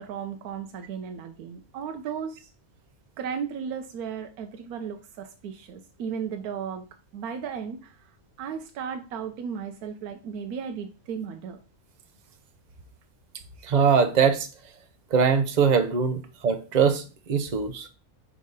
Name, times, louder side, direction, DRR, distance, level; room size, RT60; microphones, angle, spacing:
voice 1, 0.0-2.5 3.2-6.8 7.1-8.1 8.4-11.6, right 7 dB, 90° right, 1.1 m, -35 dB
voice 2, 13.7-14.5 15.1-17.0 17.3-17.9, right 6 dB, 45° right, 0.6 m, -22 dB
4.8 x 3.7 x 5.4 m
omnidirectional pair, 1.5 m